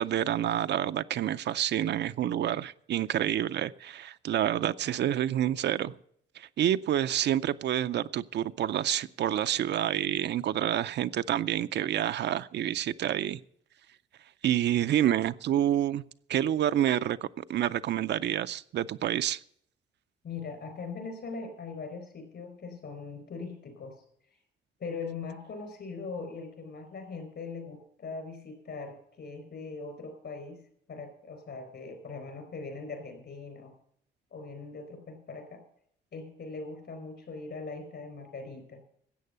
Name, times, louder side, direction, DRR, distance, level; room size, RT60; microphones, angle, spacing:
voice 1, 0.0-5.9 6.4-13.4 14.4-16.0 16.3-19.4, right 11 dB, 60° right, 12 dB, 0.5 m, -28 dB
voice 2, 20.2-24.0 24.8-30.6 30.9-33.7 34.3-35.6 36.1-38.8, left 4 dB, 60° left, 8 dB, 4.6 m, -41 dB
13.5 x 8.4 x 6.8 m, 0.67 s
cardioid pair, 90°, 20 cm